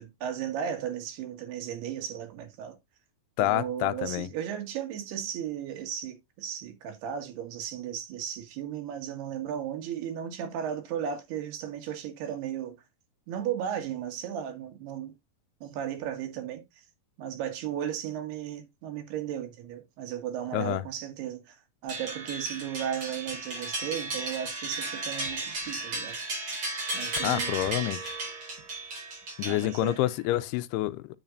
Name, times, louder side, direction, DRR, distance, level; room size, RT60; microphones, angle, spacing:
voice 1, 0.0-2.8 3.4-12.8 13.3-15.1 15.6-16.6 17.2-26.2 26.9-27.9 29.5-30.0, right 9 dB, 80° right, 3.8 m, -35 dB
voice 2, 3.4-4.3 20.5-20.8 27.2-28.2 29.4-31.2, left 16 dB, 90° left, 2.7 m, -28 dB
sound 1, 21.9-30.1, right 2 dB, 30° right, 5.6 m, -35 dB
9.8 x 7.3 x 2.5 m
omnidirectional pair, 4.5 m